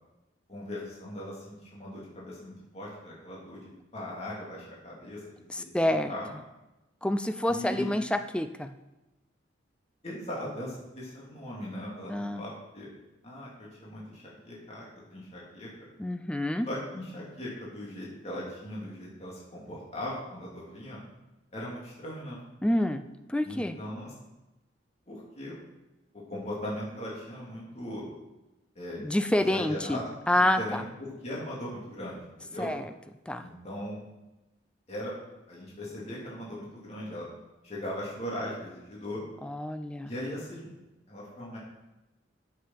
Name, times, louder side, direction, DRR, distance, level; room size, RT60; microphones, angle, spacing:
voice 1, 0.5-5.4 5.8-6.3 7.5-7.9 10.0-12.9 13.2-15.7 16.7-21.0 21.5-22.4 23.4-24.1 25.1-25.6 26.1-28.0 28.7-29.0 29.4-30.1 30.6-32.7 33.4-34.0 34.9-35.1 35.5-37.3 37.6-39.2 40.1-40.7 41.1-41.6, left 1 dB, 35° left, -5 dB, 2.7 m, -39 dB
voice 2, 5.5-6.1 7.0-8.7 12.1-12.4 16.0-16.7 22.6-23.0 23.3-23.8 29.0-30.0 30.3-30.8 32.6-32.9 33.3-33.5 39.4-40.1, left 1 dB, 5° left, 9 dB, 0.4 m, -28 dB
8.5 x 6.9 x 5.7 m, 1.0 s
head